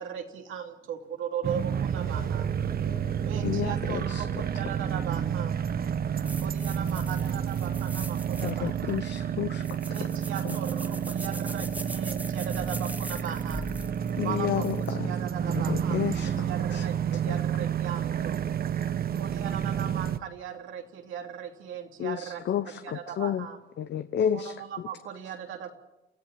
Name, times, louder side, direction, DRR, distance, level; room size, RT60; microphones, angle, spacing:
voice 1, 0.0-2.4 3.2-5.6 6.4-9.0 9.9-13.7 14.2-18.4 19.1-23.6 24.3-25.7, right 8 dB, 85° right, 3 dB, 3.0 m, -38 dB
sound 1, 1.4-20.2, right 8 dB, 50° right, 0.9 m, -30 dB
voice 2, 1.6-3.6 6.9-7.0 9.9-10.2 16.7-16.8 18.5-19.5 24.4-24.6, left 5 dB, 80° left, -1 dB, 5.4 m, -51 dB
voice 3, 3.4-4.3 8.4-9.6 10.4-10.6 14.2-15.1 15.5-16.5 16.7-16.8 17.3-17.4 22.0-23.5 23.8-24.5, left 9 dB, 65° left, 11 dB, 0.9 m, -31 dB
sound 2, 6.2-14.9, right 1 dB, 5° right, 1.2 m, -42 dB
28.5 x 14.5 x 8.6 m, 0.96 s
cardioid pair, 90°, 20 cm